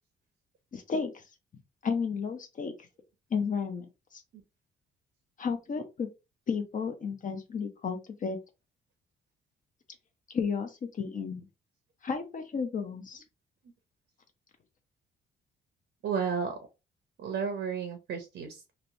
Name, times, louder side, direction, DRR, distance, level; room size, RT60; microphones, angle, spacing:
voice 1, 0.7-1.2 1.8-2.7 3.3-3.9 4.1-4.2 5.4-6.1 6.5-8.4 10.3-11.5 12.0-13.2, left 5 dB, 40° left, 6 dB, 0.5 m, -32 dB
voice 2, 16.0-16.6 17.2-18.7, right 6 dB, 65° right, 5 dB, 0.6 m, -32 dB
3.0 x 2.0 x 2.6 m, 0.27 s
cardioid pair, 90°, 20 cm